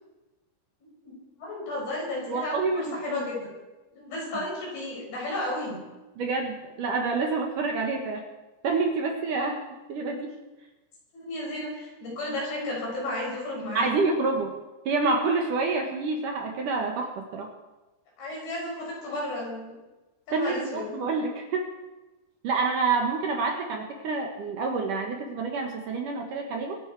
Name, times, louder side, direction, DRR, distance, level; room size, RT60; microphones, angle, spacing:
voice 1, 1.1-3.5 3.9-5.8 11.1-13.9 18.2-19.7 20.3-21.0, left 1 dB, 60° left, -3 dB, 8.0 m, -33 dB
voice 2, 2.3-3.3 6.2-8.2 8.6-9.6 9.9-10.3 13.7-14.5 14.9-17.5 20.3-21.7 22.4-26.8, right 4 dB, 60° right, 2 dB, 2.4 m, -28 dB
25.0 x 11.0 x 4.7 m, 1.1 s
omnidirectional pair, 5.1 m